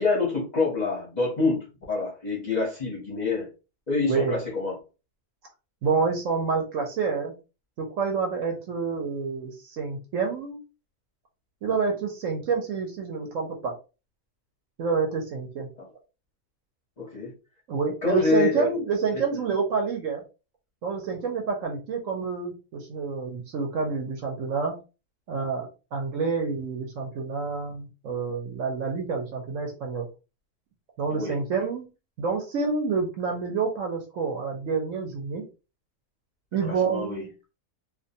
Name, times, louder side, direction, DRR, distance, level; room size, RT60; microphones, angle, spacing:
voice 1, 0.0-3.5 3.9-4.8 17.0-17.3 18.0-18.7 19.1-19.2 31.1-31.4 36.6-37.2, left 3 dB, 40° left, -3 dB, 0.6 m, -26 dB
voice 2, 5.8-7.3 7.8-10.6 11.6-13.7 14.8-15.7 17.7-20.2 20.8-24.7 25.3-30.0 31.0-31.9 32.2-35.4 36.5-37.3, right 5 dB, 65° right, 2 dB, 0.9 m, -28 dB
2.5 x 2.2 x 2.6 m, 0.31 s
omnidirectional pair, 1.6 m